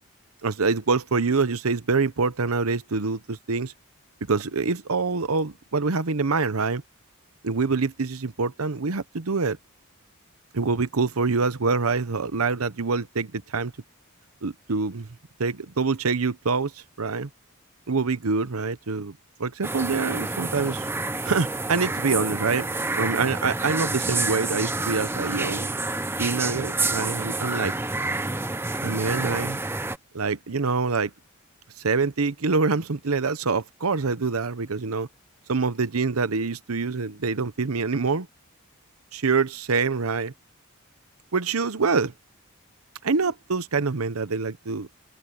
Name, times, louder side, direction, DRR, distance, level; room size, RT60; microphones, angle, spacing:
voice 1, 0.4-3.7 4.3-6.8 7.4-9.6 10.5-13.7 14.4-15.1 15.4-16.7 17.0-17.3 17.9-19.1 19.4-20.9 21.2-22.7 22.9-25.7 26.2-27.7 28.8-29.6 30.1-31.1 31.8-35.1 35.5-38.3 39.1-40.3 41.3-42.1 43.0-44.9, right 4 dB, 90° right, 0.9 m, -25 dB
sound 1, 19.6-30.0, right 2 dB, 10° right, 0.9 m, -28 dB
open air
head